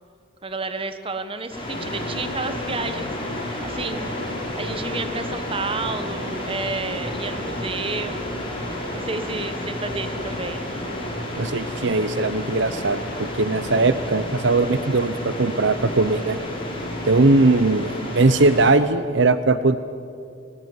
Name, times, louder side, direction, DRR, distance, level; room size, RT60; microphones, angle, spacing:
voice 1, 0.4-3.1 3.6-4.2 4.5-8.4 8.9-10.7, right 3 dB, 30° right, 10 dB, 1.3 m, -30 dB
sound 1, 1.5-18.7, left 1 dB, 25° left, 5.4 m, -31 dB
voice 2, 11.4-16.4 17.0-19.8, right 3 dB, 65° right, 13 dB, 0.7 m, -19 dB
20.5 x 20.0 x 9.7 m, 2.5 s
head